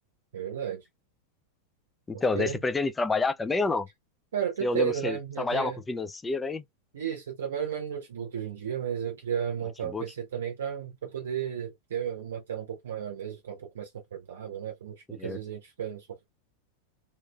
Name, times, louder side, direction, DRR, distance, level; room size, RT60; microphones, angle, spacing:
voice 1, 0.3-0.8 2.1-2.6 4.3-5.8 6.9-16.3, right 8 dB, 65° right, 0.7 m, -33 dB
voice 2, 2.1-3.9 4.6-6.6 9.8-10.0 15.2-15.4, left 3 dB, 10° left, 0.3 m, -28 dB
2.8 x 2.5 x 2.2 m
figure-of-eight pair, 90°, 0 cm